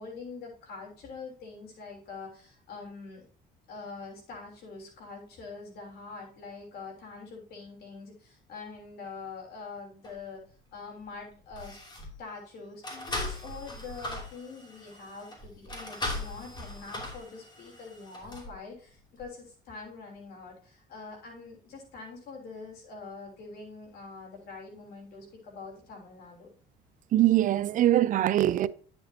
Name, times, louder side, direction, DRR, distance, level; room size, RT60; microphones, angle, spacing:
voice 1, 0.0-3.2 3.7-10.4 10.7-11.8 12.2-26.5, left 4 dB, 70° left, 3.3 m, -44 dB
sound 1, 10.0-10.2 11.0-11.2 11.5-12.2 12.8-18.5 19.2-19.3, left 2 dB, 25° left, 2.8 m, -39 dB
voice 2, 27.1-28.7, right 13 dB, 50° right, 0.4 m, -22 dB
10.5 x 7.0 x 2.8 m
cardioid pair, 110°, 17 cm